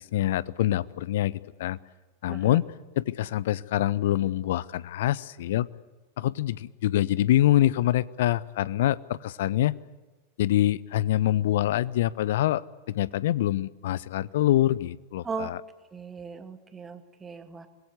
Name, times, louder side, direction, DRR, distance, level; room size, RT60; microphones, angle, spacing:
voice 1, 0.0-1.8 2.2-2.7 3.0-5.7 6.2-9.8 10.4-12.6 12.9-15.6, left 13 dB, 55° left, 20 dB, 0.7 m, -25 dB
voice 2, 2.3-2.6 15.2-15.5 15.9-17.7, right 5 dB, 15° right, 8 dB, 2.2 m, -38 dB
25.5 x 21.0 x 8.2 m, 1.2 s
figure-of-eight pair, 90°, 0 cm